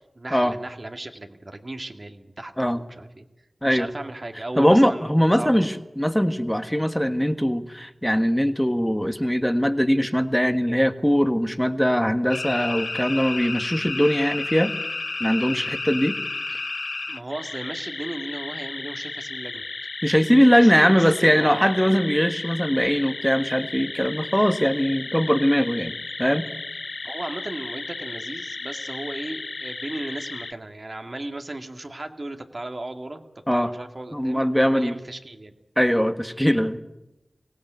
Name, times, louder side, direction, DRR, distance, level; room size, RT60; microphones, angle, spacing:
voice 1, 0.0-3.2 3.6-5.1 5.4-5.7 17.1-19.6 20.3-22.0 27.0-33.2 33.5-35.5, right 2 dB, 45° right, 5 dB, 2.2 m, -36 dB
voice 2, 4.6-14.7 15.2-16.2 20.0-26.5 33.5-33.7 34.1-35.0 35.8-36.8, equal, 5° left, 9 dB, 1.5 m, -21 dB
sound 1, 12.3-30.5, left 3 dB, 60° left, 0.8 m, -33 dB
23.5 x 17.5 x 9.3 m, 0.97 s
wide cardioid pair, 55°, 0 cm